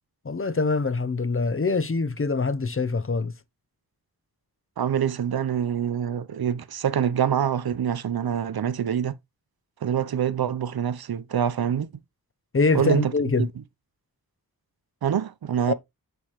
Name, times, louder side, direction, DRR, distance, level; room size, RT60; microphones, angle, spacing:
voice 1, 0.2-3.3 12.5-13.5 15.7-15.8, left 4 dB, 35° left, 0.6 m, -24 dB
voice 2, 4.8-9.2 9.8-11.9 12.7-13.1 13.4-13.5 15.0-15.7, right 8 dB, 85° right, 0.6 m, -25 dB
8.4 x 4.5 x 3.0 m
wide cardioid pair, 65°, 36 cm